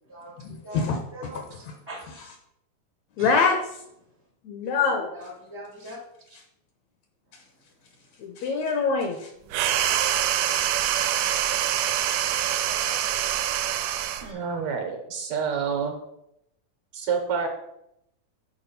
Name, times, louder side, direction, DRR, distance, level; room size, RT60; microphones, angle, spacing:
voice 1, 0.4-1.7 2.1-2.3 3.2-3.6 4.4-5.1 5.8-5.9 8.2-9.3, left 5 dB, 75° left, 4 dB, 1.7 m, -26 dB
voice 2, 1.1-1.4 1.9-2.0 3.2-3.3 4.9-6.0 11.1-11.4 12.6-13.0 14.2-14.4, right 1 dB, 30° left, -3 dB, 0.3 m, -40 dB
sound 1, 9.5-14.3, right 11 dB, 85° right, 2.2 m, -25 dB
voice 3, 14.2-16.0 16.9-17.5, right 6 dB, 70° right, 4 dB, 2.0 m, -28 dB
7.0 x 4.8 x 5.4 m, 0.81 s
omnidirectional pair, 3.7 m